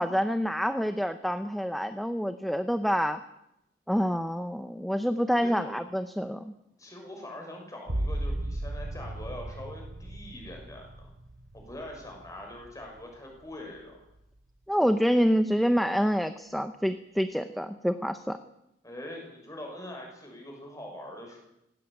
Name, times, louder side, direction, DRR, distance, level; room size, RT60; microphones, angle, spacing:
voice 1, 0.0-3.2 3.9-6.5 14.7-18.4, equal, ahead, 9 dB, 0.7 m, -27 dB
voice 2, 5.4-5.7 6.8-11.1 11.5-14.0 18.8-21.4, left 1 dB, 15° left, 1 dB, 6.4 m, -43 dB
sound 1, 7.9-13.3 13.8-14.4, right 1 dB, 75° right, 1.4 m, -36 dB
17.5 x 17.0 x 8.8 m, 0.86 s
head